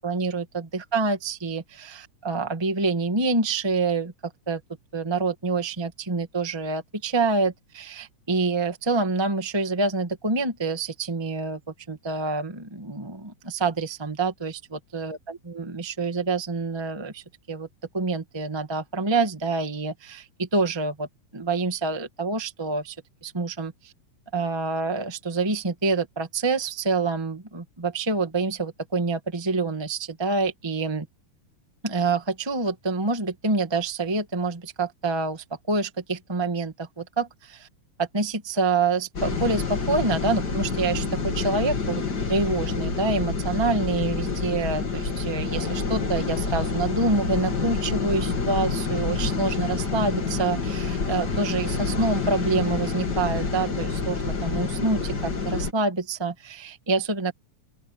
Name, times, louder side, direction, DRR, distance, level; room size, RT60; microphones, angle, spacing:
voice 1, 0.0-4.6 4.9-11.6 11.9-17.7 17.9-21.1 21.3-23.0 23.2-23.9 24.3-31.0 31.8-37.7 38.0-42.0 42.3-57.3, right 3 dB, 20° right, 0.6 m, -27 dB
sound 1, 39.1-55.7, left 4 dB, 35° left, 2.6 m, -28 dB
open air
omnidirectional pair, 3.8 m